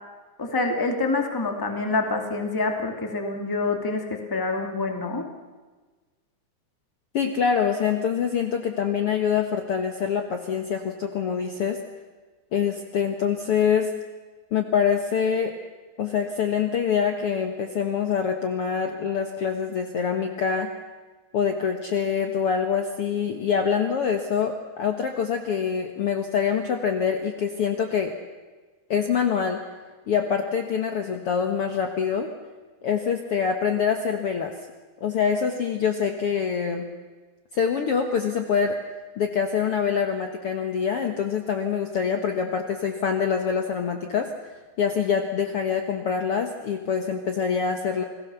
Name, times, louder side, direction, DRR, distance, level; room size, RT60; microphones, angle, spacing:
voice 1, 0.4-5.2, left 3 dB, 10° left, 4 dB, 1.2 m, -26 dB
voice 2, 7.1-11.8 12.5-13.9 14.5-15.5 16.0-20.7 21.3-28.1 28.9-29.6 30.1-32.3 32.8-34.5 35.0-36.9 37.5-38.8 39.2-44.3 44.8-48.0, left 7 dB, 80° left, 5 dB, 1.2 m, -25 dB
29.0 x 19.5 x 6.9 m, 1.3 s
omnidirectional pair, 4.6 m